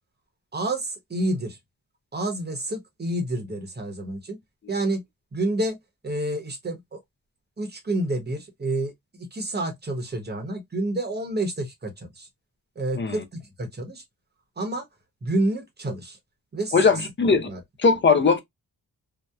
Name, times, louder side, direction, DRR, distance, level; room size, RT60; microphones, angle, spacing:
voice 1, 0.5-1.6 2.1-4.4 4.7-5.0 5.3-5.8 6.0-7.0 7.6-8.9 9.2-12.3 12.8-14.0 14.6-14.9 15.2-16.2 16.5-16.8 17.5-17.6, right 1 dB, 30° right, 0.8 m, -29 dB
voice 2, 16.7-17.5 17.8-18.4, left 4 dB, 30° left, 0.5 m, -20 dB
2.7 x 2.0 x 2.2 m
wide cardioid pair, 95°, 36 cm